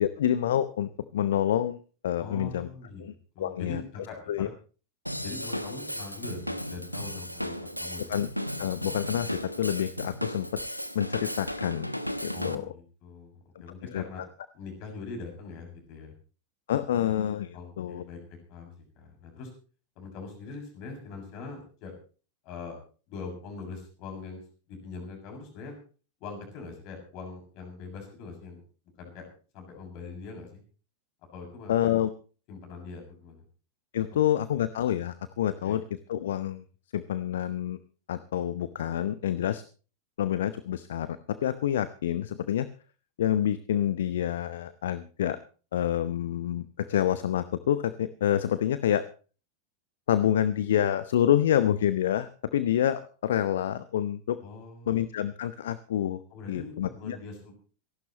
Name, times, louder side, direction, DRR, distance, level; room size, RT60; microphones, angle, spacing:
voice 1, 0.0-2.7 3.0-3.8 4.3-4.5 8.1-8.3 8.6-9.3 9.6-10.6 10.9-11.9 12.2-12.6 13.9-14.0 16.7-18.0 31.7-32.1 33.9-35.8 36.1-36.6 36.9-37.8 38.1-39.6 40.2-42.7 43.2-45.4 45.7-49.0 50.1-54.4 54.9-56.2 56.5-57.2, left 10 dB, 60° left, 15 dB, 0.8 m, -27 dB
voice 2, 2.2-3.1 3.3-4.5 5.2-8.2 12.3-14.2 14.5-16.1 17.5-19.5 19.9-21.9 22.4-22.8 23.1-24.4 24.7-25.7 26.2-28.6 29.0-29.3 29.5-30.6 31.3-32.0 32.5-33.4 34.1-34.2 35.6-35.8 54.4-55.0 56.3-57.5, left 4 dB, 40° left, 2 dB, 6.7 m, -42 dB
Drum kit / Drum, 5.1-12.6, equal, 90° left, 1.0 m, -35 dB
26.5 x 12.0 x 3.1 m, 0.38 s
figure-of-eight pair, 90°, 0 cm